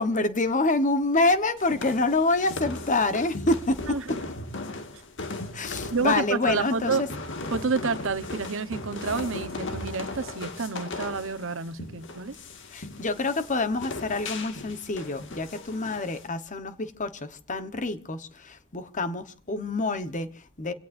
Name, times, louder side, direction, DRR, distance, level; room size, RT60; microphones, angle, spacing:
voice 1, 0.0-4.0 5.5-7.1 12.7-20.7, left 2 dB, 35° left, 1.2 m, -27 dB
sound 1, 1.6-16.3, left 2 dB, 60° left, 2.1 m, -37 dB
voice 2, 3.9-4.2 5.8-7.0 7.5-12.4, right 4 dB, 65° right, 1.1 m, -29 dB
28.0 x 17.5 x 2.7 m
head